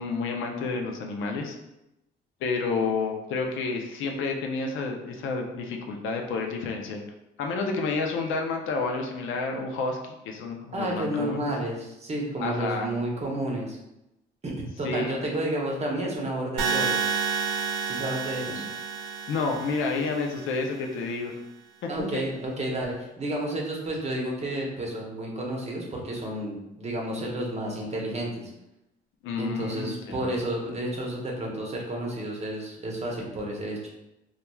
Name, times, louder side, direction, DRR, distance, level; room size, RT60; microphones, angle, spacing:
voice 1, 0.0-1.6 2.4-7.0 7.4-10.0 10.2-11.5 12.4-12.9 14.8-15.1 18.5-18.6 19.3-21.3 21.8-21.9 29.2-30.3, left 4 dB, 85° left, 3 dB, 0.5 m, -30 dB
voice 2, 10.7-13.8 14.4-14.5 14.8-17.0 17.8-18.6 21.9-28.5 29.4-33.9, right 1 dB, 35° right, -1 dB, 0.7 m, -31 dB
sound 1, 16.6-20.6, right 6 dB, 90° right, 0.5 m, -30 dB
3.0 x 2.3 x 2.2 m, 0.91 s
cardioid pair, 90°, 20 cm